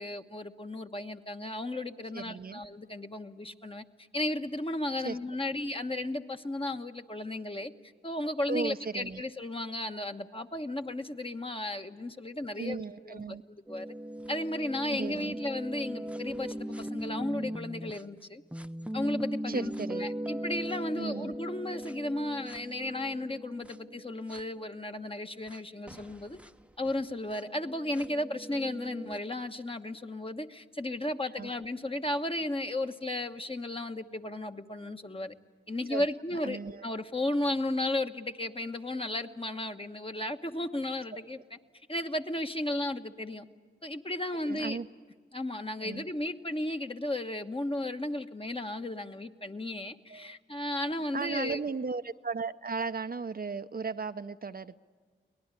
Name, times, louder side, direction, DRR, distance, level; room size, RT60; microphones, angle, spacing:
voice 1, 0.0-3.8 4.1-7.7 8.0-13.4 13.7-13.9 14.3-18.4 18.9-19.7 20.0-26.4 26.8-35.3 35.7-41.4 41.9-43.5 43.8-44.8 45.3-51.6, left 1 dB, 30° left, 6 dB, 1.2 m, -34 dB
voice 2, 2.1-2.6 5.0-5.2 8.5-9.2 12.6-13.4 14.9-15.4 19.5-20.1 21.0-21.4 31.3-31.5 35.9-36.1 36.4-36.9 44.4-44.9 45.8-46.0 50.1-50.4 51.1-54.8, right 5 dB, 50° right, 10 dB, 0.7 m, -36 dB
sound 1, 13.7-18.0 18.5-24.4 25.5-25.6 25.9-29.2, equal, 5° right, 0.7 m, -39 dB
24.0 x 18.5 x 9.8 m, 1.5 s
cardioid pair, 40°, 19 cm